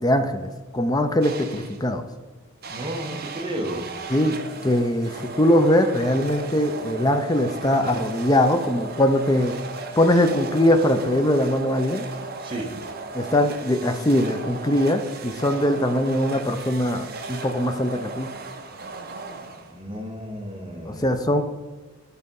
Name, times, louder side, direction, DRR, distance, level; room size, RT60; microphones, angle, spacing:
voice 1, 0.0-2.0 4.1-4.4 4.6-9.5 10.0-12.1 13.1-18.3 20.9-21.4, left 1 dB, 20° left, 6 dB, 0.5 m, -21 dB
sound 1, 1.2-1.9 2.6-20.0, right 3 dB, 45° right, 0.7 m, -36 dB
voice 2, 2.7-3.8 12.4-12.7 19.7-21.1, right 1 dB, 25° right, 0 dB, 1.2 m, -32 dB
10.0 x 4.2 x 5.3 m, 1.3 s
head